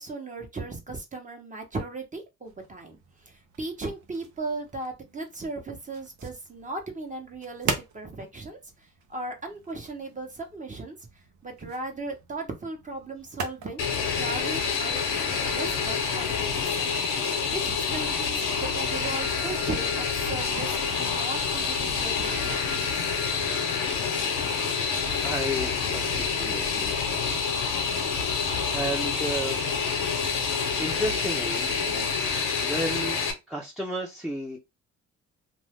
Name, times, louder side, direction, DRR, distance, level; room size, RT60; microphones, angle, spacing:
voice 1, 0.0-3.0 3.2-8.6 9.1-11.0 11.4-13.8 14.1-22.8, right 2 dB, 25° right, 1.0 m, -37 dB
sound 1, 2.4-20.5, right 6 dB, 75° right, 0.8 m, -42 dB
Fixed-wing aircraft airplane, 13.8-33.3, left 5 dB, 85° left, 0.9 m, -27 dB
voice 2, 25.2-27.0 28.6-29.6 30.8-32.1 32.6-33.2 33.5-34.6, right 1 dB, 5° right, 0.7 m, -33 dB
2.6 x 2.3 x 3.5 m
cardioid pair, 90°, 30 cm